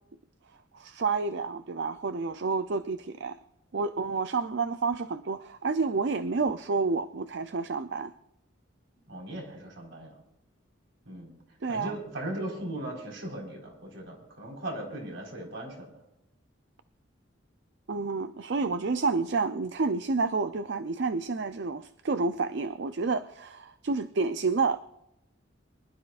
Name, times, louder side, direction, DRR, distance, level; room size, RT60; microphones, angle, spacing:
voice 1, 0.7-3.4 3.7-8.1 11.6-11.9 17.9-24.8, right 4 dB, 60° right, 11 dB, 0.5 m, -29 dB
voice 2, 9.1-10.2 11.0-11.4 11.7-16.0, right 1 dB, 75° right, -1 dB, 4.4 m, -38 dB
24.5 x 12.0 x 2.5 m, 0.86 s
head